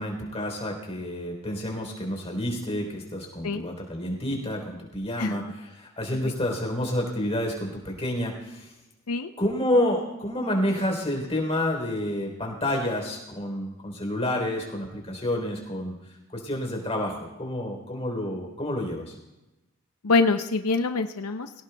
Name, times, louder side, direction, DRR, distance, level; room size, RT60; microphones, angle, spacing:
voice 1, 0.0-8.7 9.4-16.0 16.3-19.1, left 1 dB, 25° left, 1 dB, 3.5 m, -29 dB
voice 2, 20.0-21.5, left 3 dB, 90° left, 7 dB, 0.6 m, -25 dB
23.0 x 17.5 x 2.3 m, 1.0 s
head